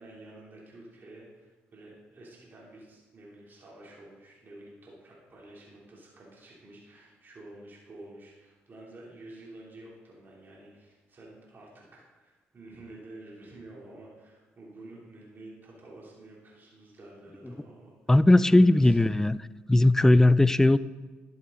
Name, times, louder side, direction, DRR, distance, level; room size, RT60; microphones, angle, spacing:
voice 1, 0.0-18.1 18.4-18.9 20.1-20.2, right 2 dB, 45° right, -4 dB, 2.8 m, -49 dB
voice 2, 18.1-19.4 19.7-20.8, left 1 dB, 10° left, 17 dB, 0.3 m, -18 dB
11.5 x 7.3 x 3.8 m, 1.2 s
supercardioid pair, 60°, 5 cm